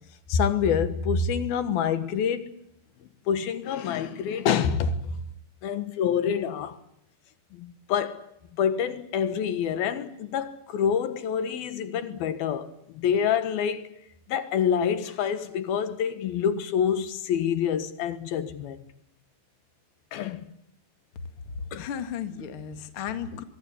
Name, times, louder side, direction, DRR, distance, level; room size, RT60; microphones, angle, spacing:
voice 1, 0.3-2.5 3.3-5.1 5.6-6.8 7.5-8.3 8.6-13.9 14.3-18.8 20.1-20.4 21.7-21.9 23.4-23.5, left 7 dB, 75° left, 3.3 m, -27 dB
voice 2, 21.5-23.4, left 7 dB, 45° left, 2.1 m, -35 dB
24.5 x 21.5 x 8.4 m
omnidirectional pair, 4.4 m